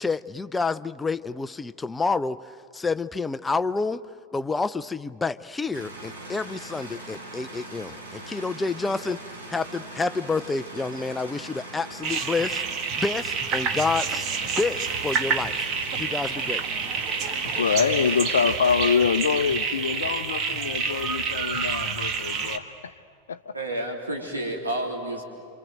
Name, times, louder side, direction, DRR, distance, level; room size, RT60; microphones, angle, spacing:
voice 1, 0.0-4.0 4.3-9.2 9.5-15.7 16.0-16.6, left 4 dB, 10° left, 0.6 m, -29 dB
sound 1, 5.7-18.5, right 2 dB, 65° right, 6.2 m, -41 dB
sound 2, 12.0-22.6, right 5 dB, 35° right, 1.8 m, -28 dB
voice 2, 17.4-22.9 23.3-23.5, left 6 dB, 65° left, 0.6 m, -25 dB
voice 3, 23.5-25.2, right 1 dB, 80° right, 3.6 m, -30 dB
28.5 x 26.5 x 7.8 m
figure-of-eight pair, 90°, 0 cm